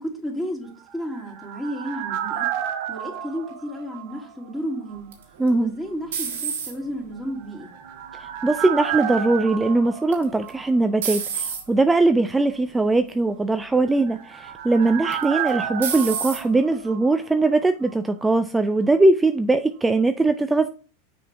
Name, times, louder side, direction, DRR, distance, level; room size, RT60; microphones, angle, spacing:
voice 1, 0.0-2.5 2.9-5.1 5.5-7.7, equal, 5° left, 2.7 m, -32 dB
sound 1, 0.8-4.7 4.9-5.0 7.4-11.1 11.4-11.5 13.7-17.6 17.9-18.0, right 10 dB, 60° right, 0.9 m, -32 dB
sound 2, 5.1-7.0 7.6-8.1 10.1-10.5 11.0-11.6 12.4-12.7 13.1-13.2 15.1-15.5 15.8-16.4, right 6 dB, 80° right, 1.5 m, -29 dB
voice 2, 5.4-5.7 8.2-20.7, right 2 dB, 10° right, 0.4 m, -21 dB
6.3 x 4.4 x 3.4 m
hypercardioid pair, 100°, 0 cm